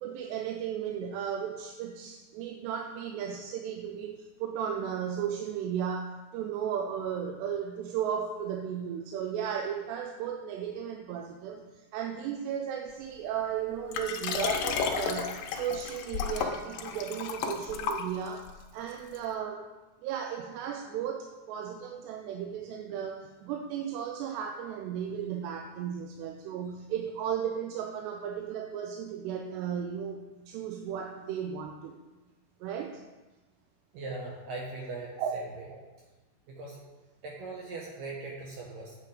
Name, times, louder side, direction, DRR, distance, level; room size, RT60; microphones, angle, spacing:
voice 1, 0.0-11.7 11.9-18.5 18.7-19.7 20.0-32.0 32.6-33.0 35.2-35.3, right 8 dB, 85° right, 3 dB, 2.8 m, -35 dB
Liquid, 13.9-18.5 19.1-19.2, left 6 dB, 85° left, 1.9 m, -32 dB
voice 2, 33.9-35.4 36.5-36.8 37.2-39.0, right 3 dB, 70° right, -2 dB, 2.3 m, -40 dB
8.6 x 7.7 x 4.9 m, 1.2 s
omnidirectional pair, 4.9 m